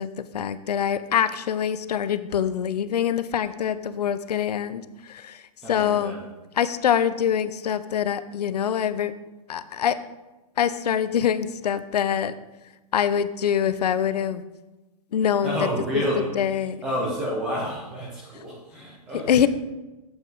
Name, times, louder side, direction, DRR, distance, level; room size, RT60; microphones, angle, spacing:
voice 1, 0.0-5.4 5.7-6.1 6.6-9.1 9.5-10.0 10.6-12.3 12.9-14.4 15.1-15.6 15.9-16.0 16.3-16.8 19.3-19.5, left 9 dB, 90° left, 13 dB, 0.6 m, -24 dB
voice 2, 5.6-6.2 15.4-16.4 16.8-19.5, equal, 5° right, -4 dB, 0.3 m, -29 dB
7.9 x 7.2 x 3.8 m, 1.1 s
hypercardioid pair, 180°, 20 cm